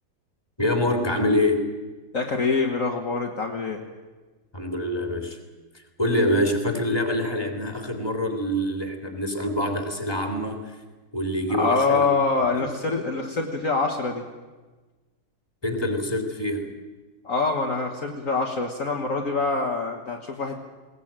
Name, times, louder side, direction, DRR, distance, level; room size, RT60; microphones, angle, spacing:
voice 1, 0.6-1.6 4.5-5.4 5.7-10.8 11.1-12.1 12.5-12.7 15.6-16.7, left 1 dB, 15° left, 5 dB, 3.0 m, -25 dB
voice 2, 2.1-3.8 11.6-14.2 17.2-20.6, left 4 dB, 50° left, 1 dB, 1.9 m, -25 dB
21.0 x 18.5 x 8.9 m, 1.3 s
omnidirectional pair, 1.9 m